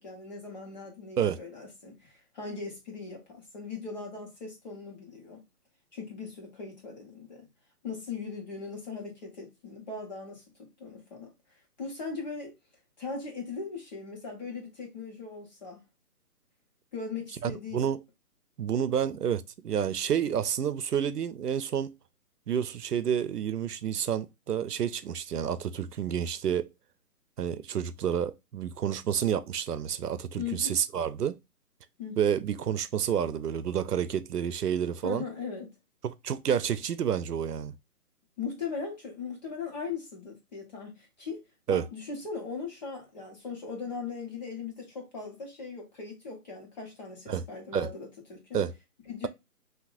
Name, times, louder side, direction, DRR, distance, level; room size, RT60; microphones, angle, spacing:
voice 1, 0.0-5.4 5.9-7.5 7.8-11.3 11.8-12.5 13.0-15.8 16.9-17.9 30.4-30.8 32.0-32.2 35.0-35.7 38.4-48.6 49.0-49.3, left 5 dB, 30° left, 1.6 m, -39 dB
voice 2, 17.4-18.0 18.6-21.9 22.5-26.7 27.4-31.4 32.2-35.2 36.0-37.7 41.7-41.8 47.3-47.4 47.7-47.9 48.5-48.7, right 8 dB, 90° right, 0.7 m, -29 dB
5.8 x 2.9 x 2.6 m
hypercardioid pair, 170°, 45 cm